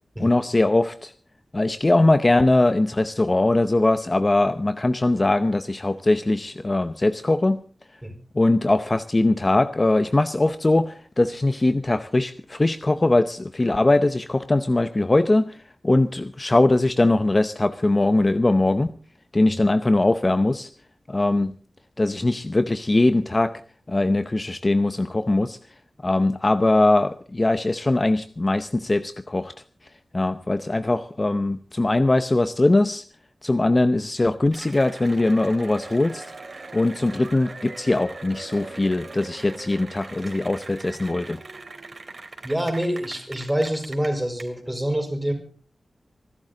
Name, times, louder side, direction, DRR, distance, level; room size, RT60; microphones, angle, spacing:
voice 1, 0.2-1.1 1.5-7.6 8.3-18.9 19.3-20.7 21.1-21.5 22.0-23.5 23.9-25.6 26.0-29.5 30.1-33.0 33.4-36.2 36.7-41.4, left 2 dB, 30° left, 11 dB, 0.7 m, -21 dB
Cheering / Applause, 34.5-44.4, right 3 dB, 50° right, 3.1 m, -40 dB
voice 2, 42.4-45.3, right 1 dB, 10° right, 6 dB, 4.7 m, -26 dB
25.0 x 12.0 x 3.9 m, 0.39 s
wide cardioid pair, 100°, 0 cm